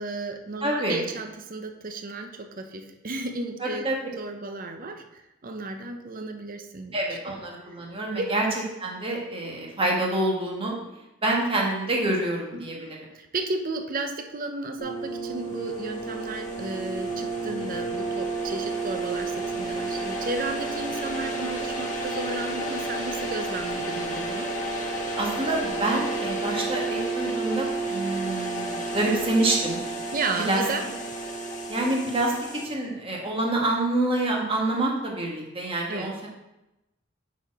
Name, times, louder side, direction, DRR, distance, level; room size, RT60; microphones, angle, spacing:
voice 1, 0.0-3.9 4.2-7.0 7.3-7.4 8.2-8.3 12.5-24.5 30.1-30.9 35.9-36.1, right 3 dB, 45° right, 6 dB, 0.7 m, -33 dB
voice 2, 0.6-1.0 3.6-4.1 6.9-8.5 8.8-10.7 11.2-13.0 25.2-29.8 30.4-30.7 31.7-32.3 32.6-36.3, right 2 dB, 30° right, -2 dB, 1.5 m, -27 dB
sound 1, 14.8-32.7, right 2 dB, 40° left, 1.2 m, -31 dB
7.0 x 4.2 x 4.8 m, 0.95 s
head